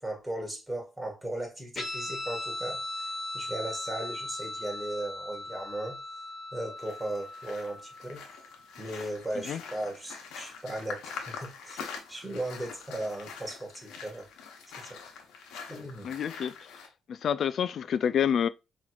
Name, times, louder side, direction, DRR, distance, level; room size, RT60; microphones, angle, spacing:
voice 1, 0.0-2.8 3.3-6.0 6.5-8.2 8.8-14.3 14.8-15.0 15.7-16.1, right 1 dB, 15° right, 1.7 m, -37 dB
Guitar, 1.8-8.7, left 2 dB, 30° left, 2.2 m, -38 dB
sound 1, 6.8-16.9, left 5 dB, 90° left, 1.0 m, -44 dB
voice 2, 16.0-16.7 17.1-18.5, left 8 dB, 60° left, 0.3 m, -28 dB
5.5 x 3.1 x 2.4 m
cardioid pair, 90°, 0 cm